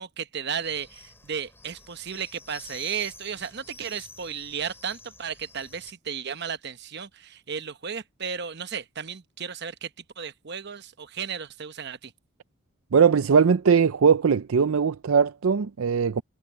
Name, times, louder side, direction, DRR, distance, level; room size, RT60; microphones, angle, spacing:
voice 1, 0.0-9.9 10.2-12.1, right 7 dB, 50° right, 0.9 m, -34 dB
sound 1, 0.5-5.9, left 3 dB, 10° left, 2.4 m, -49 dB
voice 2, 12.9-16.2, right 6 dB, 75° right, 0.5 m, -20 dB
head